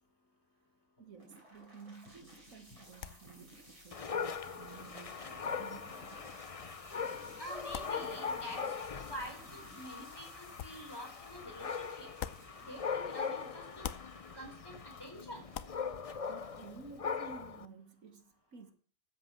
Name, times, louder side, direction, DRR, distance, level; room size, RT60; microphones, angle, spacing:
voice 1, 1.0-6.5 16.1-18.7, right 5 dB, 75° right, 1.9 m, -54 dB
sound 1, 1.2-17.2, right 1 dB, 25° right, 5.8 m, -57 dB
sound 2, 2.1-13.3 13.6-17.0, left 10 dB, 75° left, 1.1 m, -51 dB
Dog, 3.9-17.7, left 6 dB, 35° left, 0.6 m, -41 dB
voice 2, 7.4-12.1 12.7-13.8 14.3-15.5, equal, 15° left, 4.2 m, -47 dB
13.5 x 8.0 x 5.9 m
omnidirectional pair, 1.4 m